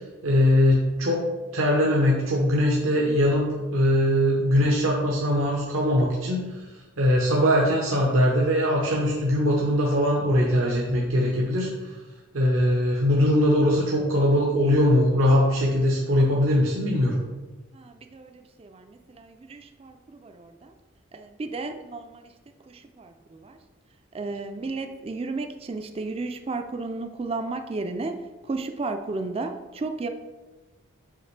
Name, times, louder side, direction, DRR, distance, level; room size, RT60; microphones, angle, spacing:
voice 1, 0.2-1.3 1.5-3.5 3.7-6.5 7.0-11.9 12.3-17.2, left 1 dB, 85° right, -3 dB, 0.8 m, -21 dB
voice 2, 17.7-20.7 21.1-22.3 22.7-23.6 24.1-28.2 28.5-30.1, right 3 dB, 30° right, 7 dB, 0.3 m, -33 dB
5.7 x 5.1 x 3.2 m, 1.2 s
head